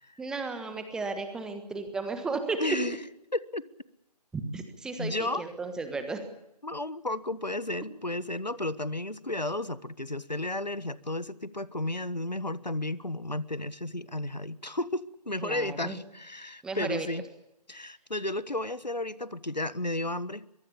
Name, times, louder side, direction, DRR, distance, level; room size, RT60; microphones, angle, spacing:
voice 1, 0.2-2.6 4.3-6.2 15.4-16.0 16.6-17.1, right 3 dB, 5° right, 8 dB, 1.3 m, -34 dB
voice 2, 2.6-3.0 3.3-3.6 5.0-5.5 6.6-17.3 17.7-20.4, left 2 dB, 90° left, 17 dB, 1.4 m, -33 dB
23.5 x 22.5 x 6.9 m, 0.86 s
figure-of-eight pair, 150°, 21 cm